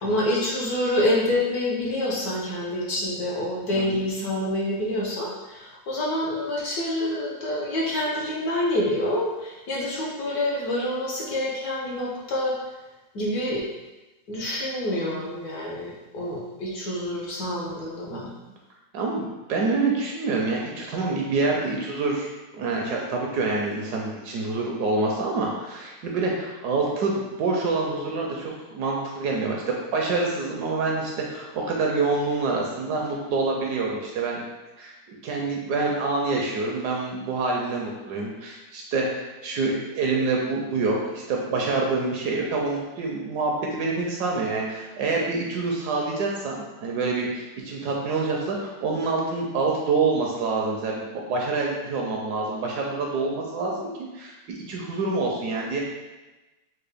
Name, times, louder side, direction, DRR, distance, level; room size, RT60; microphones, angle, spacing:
voice 1, 0.0-12.5 13.1-13.7 14.3-18.3, left 1 dB, 65° left, -4 dB, 1.1 m, -27 dB
voice 2, 18.9-22.3 22.5-34.5 34.8-54.3 54.7-55.8, right 3 dB, 75° right, -1 dB, 1.0 m, -26 dB
4.5 x 2.1 x 3.4 m, 1.1 s
omnidirectional pair, 2.0 m